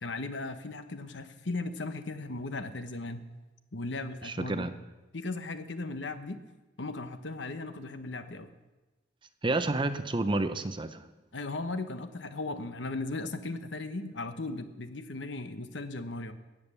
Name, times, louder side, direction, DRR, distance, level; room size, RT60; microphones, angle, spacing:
voice 1, 0.0-3.2 3.7-4.7 5.1-6.4 6.8-8.5 11.3-16.3, left 2 dB, 70° left, 9 dB, 1.0 m, -37 dB
voice 2, 4.2-4.7 9.4-11.0, right 2 dB, 25° right, 10 dB, 0.6 m, -30 dB
16.0 x 8.5 x 6.9 m, 1.1 s
head